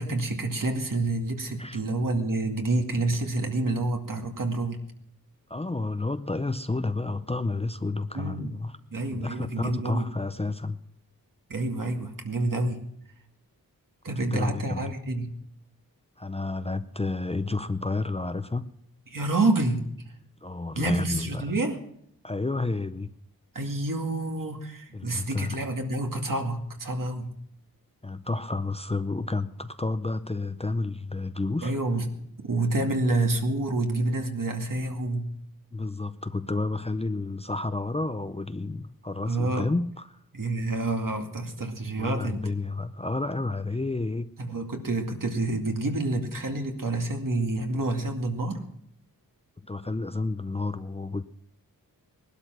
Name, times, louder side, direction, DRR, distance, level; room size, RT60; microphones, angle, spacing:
voice 1, 0.0-4.8 8.1-8.5 8.9-10.1 11.5-12.9 14.0-15.3 19.1-19.9 20.7-21.8 23.5-27.3 31.6-32.1 32.4-35.3 39.2-39.7 40.3-42.5 44.4-48.6, right 2 dB, 60° right, 2.3 m, -28 dB
voice 2, 1.5-1.8 5.5-8.8 9.1-10.8 14.3-14.9 16.2-18.7 20.4-21.6 22.2-23.1 24.9-25.6 28.0-31.7 35.7-40.2 42.0-44.3 49.6-51.2, left 3 dB, 15° left, 0.5 m, -30 dB
19.5 x 12.0 x 6.1 m
wide cardioid pair, 95°, 36 cm